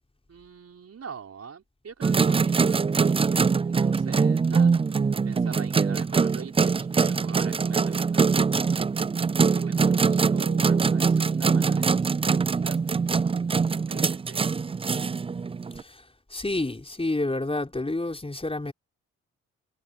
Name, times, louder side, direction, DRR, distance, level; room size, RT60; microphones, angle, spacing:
voice 1, 0.3-4.7 5.3-8.8 9.4-13.0 13.9-14.8, right 6 dB, 50° right, 5.4 m, -44 dB
sound 1, 2.0-15.8, right 5 dB, 20° right, 0.4 m, -23 dB
voice 2, 15.7-18.7, left 2 dB, 20° left, 5.1 m, -29 dB
hypercardioid pair, 50°, 31 cm